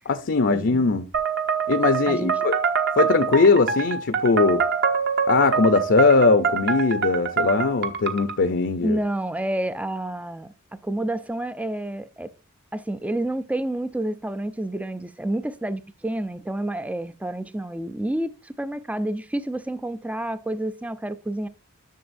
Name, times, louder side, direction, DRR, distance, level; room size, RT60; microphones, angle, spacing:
voice 1, 0.1-1.1 1.7-2.5 3.0-4.6 5.3-9.0, left 4 dB, 50° left, 0.6 m, -20 dB
sound 1, 1.1-8.4, right 6 dB, 50° right, 1.1 m, -25 dB
voice 2, 8.8-10.5 10.8-12.3 12.7-21.5, right 1 dB, 5° right, 0.4 m, -29 dB
11.0 x 6.6 x 2.6 m
head